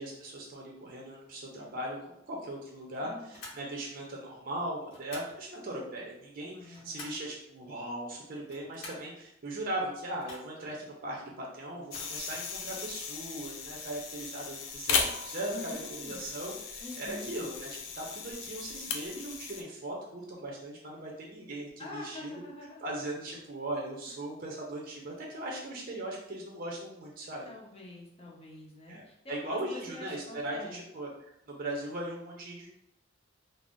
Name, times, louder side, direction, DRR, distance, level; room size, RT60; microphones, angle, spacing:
voice 1, 0.0-22.3 22.8-27.5 28.9-29.0 29.3-32.7, right 1 dB, 45° right, -2 dB, 0.5 m, -39 dB
voice 2, 3.0-3.3 6.5-7.2 15.4-16.2 16.8-17.3 21.8-22.9 27.4-30.8, left 2 dB, 30° left, -3 dB, 0.6 m, -46 dB
sound 1, 3.3-3.7 4.9-5.4 6.4-7.3 8.4-9.1 10.2-10.7 11.8-12.5, left 2 dB, 60° left, 0.9 m, -48 dB
sound 2, 11.9-19.6, left 5 dB, 75° left, 0.4 m, -37 dB
2.5 x 2.0 x 3.5 m, 0.77 s
head